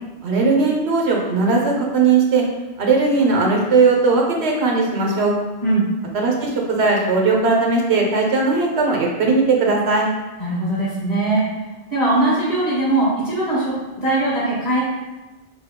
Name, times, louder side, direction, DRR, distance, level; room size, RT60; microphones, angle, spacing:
voice 1, 0.2-2.4 2.8-5.4 6.1-10.1, right 4 dB, 85° right, 0 dB, 1.0 m, -18 dB
voice 2, 10.4-11.5 11.9-14.8, right 2 dB, 40° left, -9 dB, 1.7 m, -20 dB
4.6 x 2.3 x 3.5 m, 1.1 s
omnidirectional pair, 1.1 m